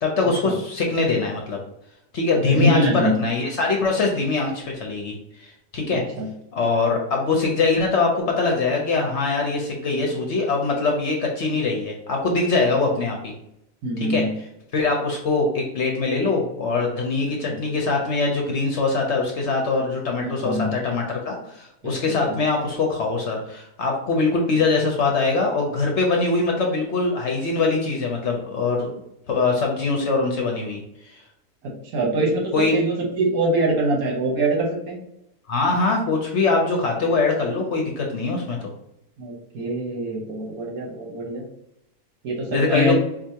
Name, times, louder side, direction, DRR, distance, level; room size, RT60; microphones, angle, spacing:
voice 1, 0.0-1.6 2.1-6.0 6.5-13.3 14.0-14.2 14.7-28.9 29.3-30.8 31.1-31.2 32.5-32.7 35.5-38.7 42.5-42.9, left 3 dB, 60° left, 1 dB, 0.8 m, -23 dB
voice 2, 2.5-3.1 6.2-6.3 13.8-14.3 17.5-17.6 20.2-20.7 21.8-21.9 31.6-35.0 39.2-41.4 42.2-42.9, right 1 dB, 75° right, 0 dB, 1.4 m, -23 dB
4.7 x 2.4 x 2.8 m, 0.80 s
omnidirectional pair, 1.6 m